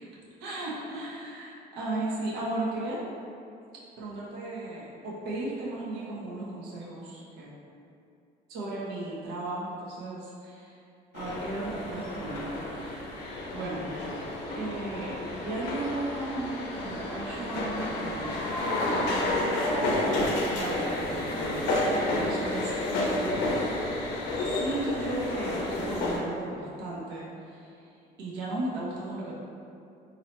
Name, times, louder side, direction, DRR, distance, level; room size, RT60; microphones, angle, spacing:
voice 1, 0.4-3.0 4.0-7.5 8.5-10.8 11.1-13.9 14.5-18.5 18.9-19.5 19.9-22.7 23.0-23.5 24.4-27.9 28.2-29.3, right 2 dB, 80° right, -6 dB, 0.7 m, -36 dB
sound 1, 11.1-26.2, left 1 dB, 90° left, 0.5 m, -30 dB
2.7 x 2.1 x 3.9 m, 2.6 s
cardioid pair, 110°, 17 cm